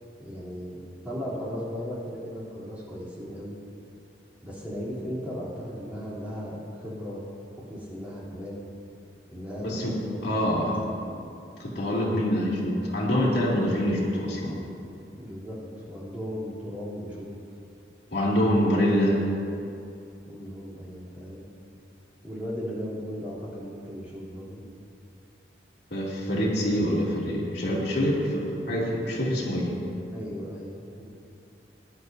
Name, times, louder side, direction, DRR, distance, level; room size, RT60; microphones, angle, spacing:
voice 1, 0.2-0.8 1.0-3.6 4.4-7.2 7.5-8.6 9.3-10.5 15.2-15.6 15.9-17.3 20.2-21.5 22.2-24.6 30.1-31.0, equal, 10° right, -9 dB, 3.2 m, -36 dB
voice 2, 9.6-10.0 10.2-10.8 11.6-14.6 18.1-19.2 25.9-29.7, equal, 70° left, -6 dB, 2.8 m, -25 dB
21.5 x 11.0 x 2.7 m, 2.6 s
head